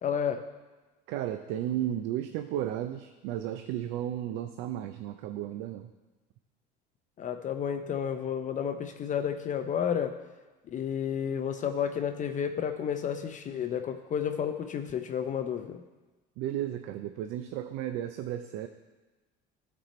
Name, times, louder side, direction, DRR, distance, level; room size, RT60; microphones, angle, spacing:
voice 1, 0.0-0.4 7.2-10.2 10.7-15.8, left 8 dB, 35° left, 7 dB, 0.5 m, -31 dB
voice 2, 1.1-5.9 16.4-18.7, right 11 dB, 70° right, 8 dB, 0.5 m, -34 dB
12.0 x 4.3 x 4.3 m, 1.2 s
supercardioid pair, 95°, 21 cm